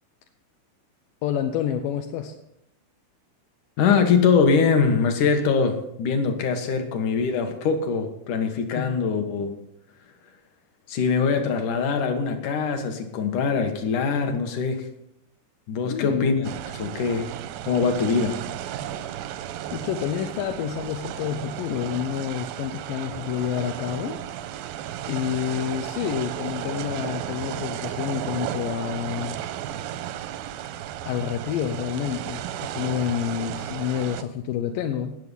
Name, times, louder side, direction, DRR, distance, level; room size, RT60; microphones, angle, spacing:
voice 1, 1.2-2.3 8.8-8.9 15.8-16.4 19.7-24.2 25.0-29.4 31.1-35.2, left 9 dB, 75° left, 5 dB, 2.1 m, -28 dB
voice 2, 3.8-9.5 10.9-14.9 15.7-17.3 17.7-18.3, left 5 dB, 60° left, 6 dB, 2.5 m, -23 dB
sound 1, 16.4-34.2, right 11 dB, 80° right, 2.1 m, -34 dB
19.0 x 6.8 x 5.6 m, 0.79 s
omnidirectional pair, 4.8 m